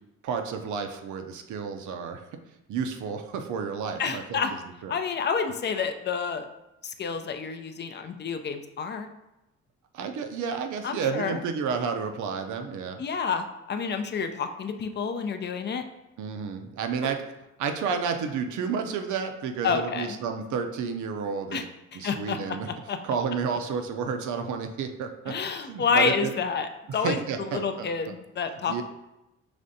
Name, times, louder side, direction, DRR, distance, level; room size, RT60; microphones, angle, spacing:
voice 1, 0.2-2.2 2.7-4.4 4.8-4.9 9.9-13.0 16.2-17.2 17.6-21.6 21.9-22.7 23.0-26.3 26.9-27.9 28.7-28.8, right 6 dB, 75° right, 6 dB, 0.6 m, -31 dB
voice 2, 4.0-4.5 4.9-6.5 6.8-9.1 10.8-11.4 13.0-15.8 19.6-20.2 21.5-21.6 21.9-22.4 22.7-23.0 25.3-28.8, left 5 dB, 35° left, 7 dB, 0.4 m, -29 dB
5.0 x 3.3 x 2.7 m, 0.94 s
cardioid pair, 90°, 30 cm